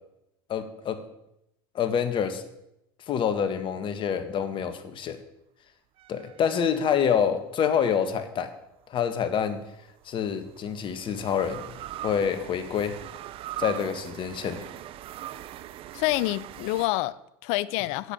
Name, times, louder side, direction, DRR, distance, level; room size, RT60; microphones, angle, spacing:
voice 1, 0.5-1.0 1.7-2.4 3.1-5.2 6.1-8.5 8.9-9.6 10.0-11.6 12.0-12.9 13.6-14.6, left 7 dB, 45° left, 1.6 m, -27 dB
sound 1, 6.0-7.5 9.3-16.9, right 12 dB, 50° right, 0.6 m, -41 dB
voice 2, 15.9-18.1, left 17 dB, 60° left, 0.5 m, -27 dB
8.1 x 7.7 x 8.5 m
hypercardioid pair, 85°, 12 cm